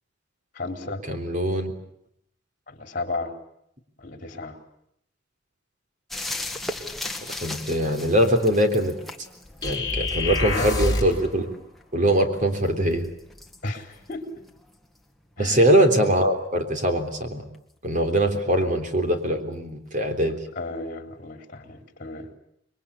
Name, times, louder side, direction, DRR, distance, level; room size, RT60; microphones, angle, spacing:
voice 1, 0.5-1.0 2.7-3.4 4.0-4.6 10.4-10.7 13.6-14.3 15.4-15.6 18.6-18.7 20.6-22.3, left 2 dB, 45° left, 6 dB, 3.9 m, -33 dB
voice 2, 1.1-1.7 7.4-9.0 9.6-11.5 11.9-13.0 15.4-17.4 17.8-20.4, right 1 dB, 40° right, 6 dB, 3.6 m, -22 dB
sound 1, 6.1-15.5 17.5-17.6, left 2 dB, ahead, 2.0 m, -39 dB
sound 2, 9.6-11.2, left 2 dB, 20° left, 6.7 m, -26 dB
28.0 x 22.5 x 8.5 m, 0.75 s
head